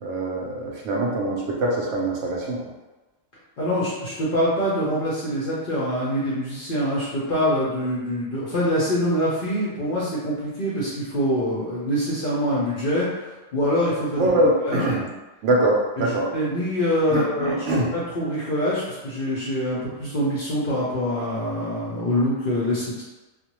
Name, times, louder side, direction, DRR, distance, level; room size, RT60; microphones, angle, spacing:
voice 1, 0.0-2.6 14.2-15.1 15.4-16.3 17.1-17.9, right 1 dB, 70° right, -2 dB, 0.8 m, -23 dB
voice 2, 3.6-14.3 14.7-14.8 16.0-16.1 16.3-17.5 17.9-23.0, equal, 55° left, -7 dB, 0.6 m, -24 dB
2.4 x 2.1 x 2.9 m, 1.1 s
omnidirectional pair, 1.4 m